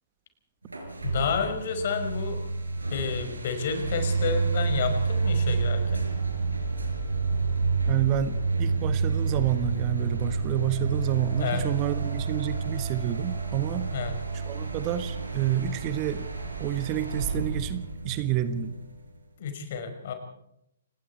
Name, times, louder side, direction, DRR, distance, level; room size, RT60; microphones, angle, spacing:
sound 1, 0.7-19.2, right 4 dB, 80° right, 5.3 m, -29 dB
voice 1, 1.0-2.4 2.9-6.1 11.4-11.6 13.9-14.1 19.4-20.1, left 6 dB, 50° left, 7 dB, 5.4 m, -30 dB
voice 2, 7.9-13.9 14.5-16.3 16.6-18.7, right 11 dB, 30° right, 12 dB, 1.3 m, -29 dB
29.5 x 19.0 x 4.6 m, 0.77 s
figure-of-eight pair, 125°, 0 cm